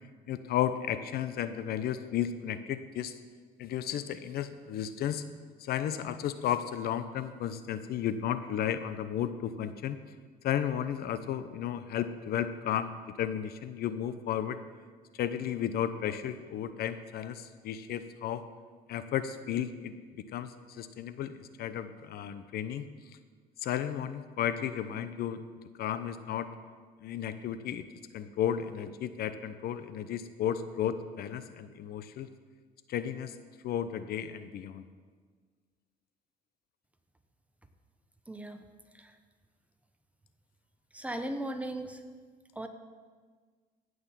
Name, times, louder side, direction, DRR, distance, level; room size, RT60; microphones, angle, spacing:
voice 1, 0.3-3.1 3.6-5.2 5.6-10.0 10.4-12.9 13.2-14.6 15.1-18.4 18.9-22.9 23.6-25.4 25.8-26.5 27.0-27.8 28.1-32.3 32.9-33.3 33.6-34.8, left 10 dB, 65° left, 12 dB, 0.8 m, -33 dB
voice 2, 38.3-38.6 38.9-39.2 40.9-42.0 42.5-42.7, right 1 dB, 10° right, 7 dB, 1.1 m, -37 dB
16.0 x 6.4 x 7.4 m, 1.5 s
cardioid pair, 110°, 17 cm